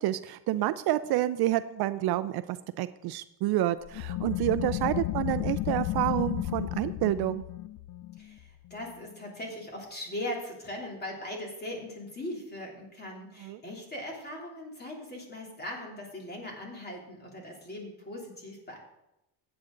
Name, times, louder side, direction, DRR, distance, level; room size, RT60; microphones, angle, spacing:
voice 1, 0.0-7.4 13.4-13.6, right 14 dB, 60° right, 13 dB, 0.5 m, -29 dB
sound 1, 3.8-9.2, left 15 dB, 50° left, 0.4 m, -33 dB
voice 2, 8.2-18.8, left 1 dB, 20° left, -1 dB, 3.2 m, -40 dB
15.5 x 8.9 x 3.9 m, 0.88 s
cardioid pair, 140°, 44 cm